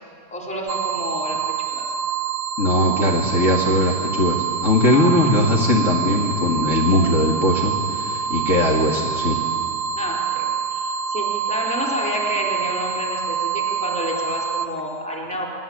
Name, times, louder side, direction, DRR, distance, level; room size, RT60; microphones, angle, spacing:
voice 1, 0.3-1.9 4.9-5.1 10.0-15.5, equal, ahead, -2 dB, 3.9 m, -29 dB
sound 1, 0.7-14.7, right 7 dB, 70° right, 1.9 m, -26 dB
voice 2, 2.6-9.4, left 1 dB, 25° left, -1 dB, 2.3 m, -19 dB
29.5 x 21.5 x 8.8 m, 2.2 s
omnidirectional pair, 3.4 m